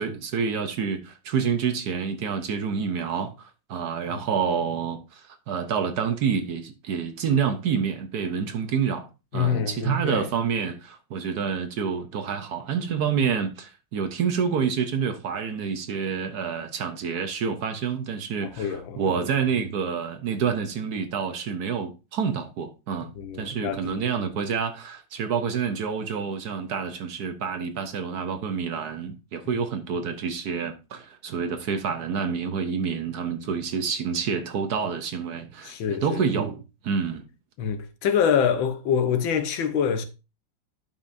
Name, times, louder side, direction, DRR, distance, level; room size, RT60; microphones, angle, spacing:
voice 1, 0.0-9.1 9.3-23.1 23.4-37.2, right 6 dB, 65° right, 1.2 m, -28 dB
voice 2, 9.3-10.3 18.4-19.1 23.2-24.0 35.6-36.2 37.6-40.0, left 7 dB, 85° left, 1.8 m, -26 dB
11.5 x 5.5 x 2.6 m
omnidirectional pair, 2.1 m